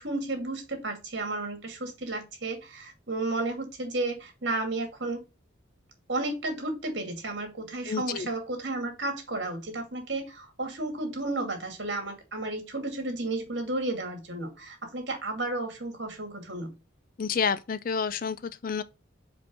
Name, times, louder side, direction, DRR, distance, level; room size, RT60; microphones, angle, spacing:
voice 1, 0.0-5.2 6.1-16.7, right 2 dB, 60° right, 2.3 m, -33 dB
voice 2, 7.9-8.3 17.2-18.8, left 6 dB, 45° left, 0.4 m, -29 dB
5.2 x 4.5 x 4.6 m
head